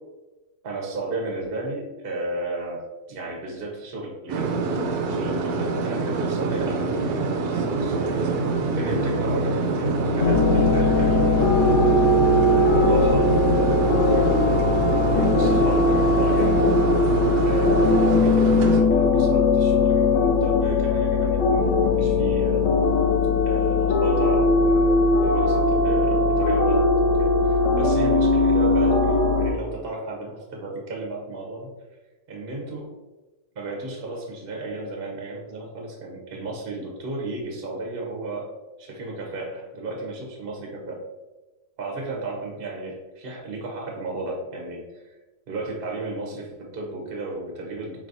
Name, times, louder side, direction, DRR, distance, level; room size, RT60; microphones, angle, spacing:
voice 1, 0.6-2.8 3.1-4.6 5.1-8.4 8.7-11.6 12.3-17.0 17.4-22.8 23.4-31.7 32.3-32.9 33.5-38.5 38.8-41.0 41.8-45.0 45.5-48.1, right 2 dB, 45° right, -1 dB, 0.7 m, -33 dB
sound 1, 4.3-18.8, right 3 dB, 70° right, 0.9 m, -25 dB
sound 2, 10.2-29.5, left 3 dB, 70° left, 1.2 m, -20 dB
5.1 x 3.2 x 2.6 m, 1.1 s
omnidirectional pair, 2.1 m